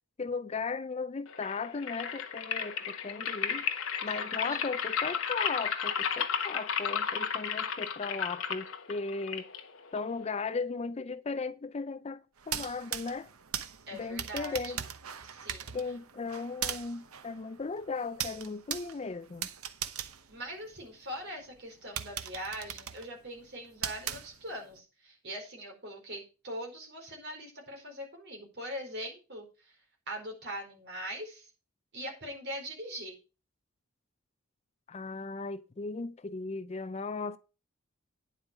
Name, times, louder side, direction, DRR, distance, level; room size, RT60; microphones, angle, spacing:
voice 1, 0.2-9.5 9.9-13.3 13.9-14.8 15.7-19.5 34.9-37.4, left 4 dB, 30° left, 0.4 m, -37 dB
sound 1, 1.3-10.3, left 7 dB, 65° left, 1.2 m, -34 dB
sound 2, 12.4-21.1 21.5-21.6 22.0-24.7, right 9 dB, 80° right, 1.0 m, -40 dB
voice 2, 13.9-14.8 15.2-15.7 20.3-29.8 30.1-31.5 31.9-33.1, equal, 50° right, 4.4 m, -42 dB
9.7 x 8.2 x 5.0 m
head